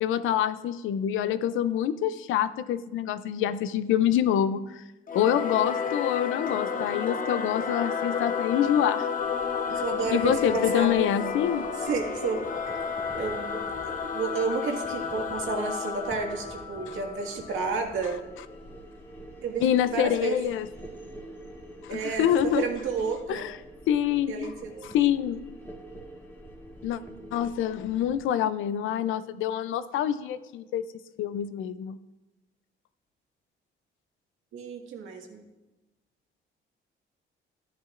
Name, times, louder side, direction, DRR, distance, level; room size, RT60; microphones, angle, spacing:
voice 1, 0.0-4.8 5.1-9.1 9.7-9.8 10.1-11.7 19.6-20.7 21.8-22.7 23.3-23.6 23.9-24.5 24.8-25.4 26.8-27.0 27.3-30.8 31.2-32.0, left 10 dB, 85° left, 13 dB, 0.6 m, -26 dB
Singing / Musical instrument, 5.1-18.0, left 6 dB, 45° left, 1.0 m, -31 dB
sound 1, 9.2-28.2, right 1 dB, 10° left, 1.8 m, -46 dB
voice 2, 9.8-11.1 11.8-12.5 13.2-13.6 13.9-18.2 19.4-20.4 21.9-23.4 24.3-24.9 34.5-35.5, right 4 dB, 80° right, 1 dB, 1.9 m, -31 dB
13.0 x 10.5 x 2.6 m, 1.0 s
cardioid pair, 90°, 20 cm